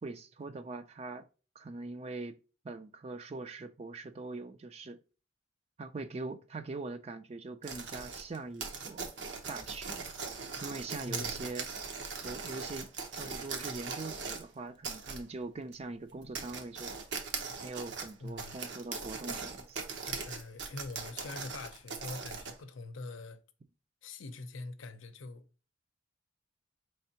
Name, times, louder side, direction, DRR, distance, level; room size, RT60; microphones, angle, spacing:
voice 1, 0.0-1.3 1.6-2.4 2.6-5.0 5.8-9.1 9.5-10.1 10.6-11.7 12.2-12.9 13.2-16.9 17.6-19.8, right 3 dB, 35° right, 0.4 m, -42 dB
sound 1, 7.6-14.4 14.8-15.2 15.7-15.8 16.2-22.6, right 5 dB, 65° right, 0.8 m, -40 dB
voice 2, 11.1-11.5 18.2-18.6 20.0-23.4 24.0-25.4, left 3 dB, 85° left, 0.6 m, -44 dB
4.4 x 3.3 x 2.7 m
head